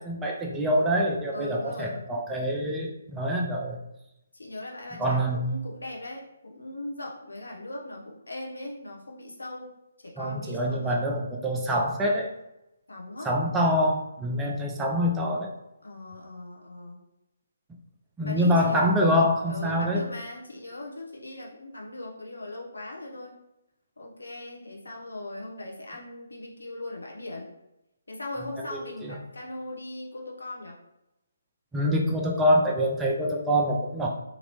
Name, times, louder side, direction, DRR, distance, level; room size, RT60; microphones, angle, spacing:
voice 1, 0.0-3.8 5.0-5.5 10.2-12.3 13.2-15.5 18.2-20.1 28.7-29.2 31.7-34.1, equal, 10° right, -1 dB, 0.4 m, -25 dB
voice 2, 1.3-2.0 4.3-9.7 10.0-11.0 12.9-13.3 15.8-17.0 18.2-19.0 19.5-23.4 24.0-27.5 28.1-30.8, left 2 dB, 75° left, -2 dB, 0.8 m, -39 dB
2.9 x 2.6 x 3.0 m, 0.91 s
figure-of-eight pair, 140°, 0 cm